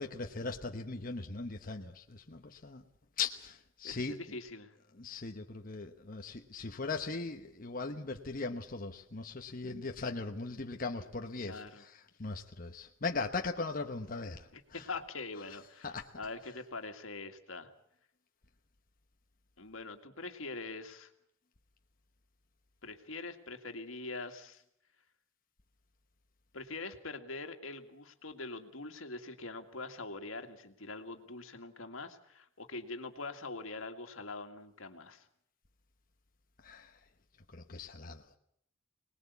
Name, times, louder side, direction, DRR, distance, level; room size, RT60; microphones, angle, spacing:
voice 1, 0.0-2.8 3.2-4.2 5.0-11.6 12.2-14.4 15.8-16.0 36.6-36.9 37.5-38.2, left 4 dB, 45° left, 4 dB, 1.1 m, -39 dB
voice 2, 3.8-4.7 11.4-11.9 14.5-14.6 14.9-17.7 19.6-21.1 22.8-24.6 26.5-35.3, left 3 dB, 85° left, 6 dB, 2.1 m, -43 dB
25.0 x 19.5 x 8.3 m, 0.72 s
head